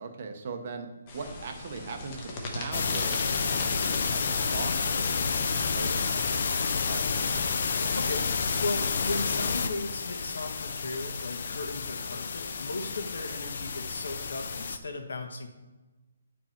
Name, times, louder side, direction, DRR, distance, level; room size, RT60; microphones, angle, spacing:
voice 1, 0.0-7.2, right 4 dB, 30° right, 5 dB, 0.8 m, -40 dB
sound 1, 1.1-7.3, left 2 dB, 20° left, 0.8 m, -40 dB
sound 2, 2.7-14.8, left 5 dB, 40° left, 0.5 m, -30 dB
voice 2, 8.0-15.5, left 2 dB, 80° left, 4 dB, 1.4 m, -36 dB
8.9 x 4.7 x 4.4 m, 1.2 s
hypercardioid pair, 180°, 0 cm